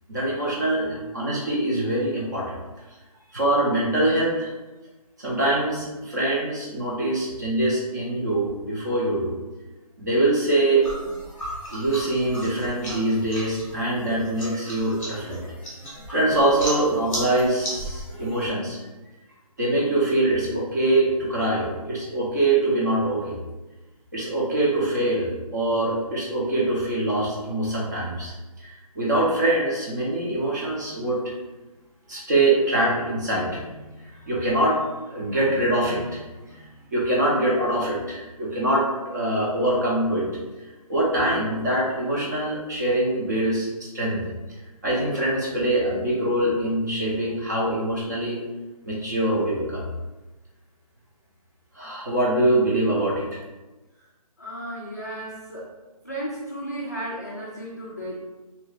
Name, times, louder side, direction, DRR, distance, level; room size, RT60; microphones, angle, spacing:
voice 1, 0.1-2.6 3.3-4.5 5.2-9.3 10.0-10.8 11.7-15.4 16.1-18.8 19.6-23.4 24.1-31.2 32.1-33.7 34.0-40.3 40.9-44.2 44.8-48.4 48.8-49.9 51.7-53.4, right 1 dB, 30° right, -5 dB, 0.7 m, -24 dB
sound 1, 10.8-18.5, equal, 5° left, 0.9 m, -36 dB
voice 2, 54.4-55.7 56.0-58.2, right 1 dB, 25° left, -6 dB, 0.4 m, -34 dB
2.8 x 2.4 x 3.4 m, 1.1 s
hypercardioid pair, 170°, 20 cm